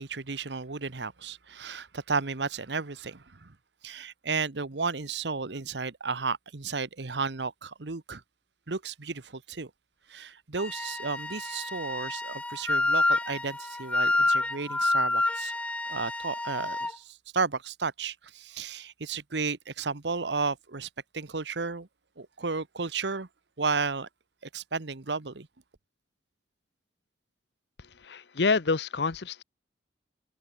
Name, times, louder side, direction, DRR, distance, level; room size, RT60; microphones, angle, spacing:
voice 1, 0.0-3.5 3.8-8.2 8.7-9.7 10.1-15.5 15.9-20.9 21.1-21.9 22.2-23.3 23.6-24.1 24.4-25.5, right 4 dB, 80° right, 1.1 m, -33 dB
Wind instrument woodwind instrument, 10.6-16.9, left 2 dB, 5° left, 0.3 m, -28 dB
voice 2, 28.0-29.4, left 4 dB, 75° left, 0.8 m, -27 dB
head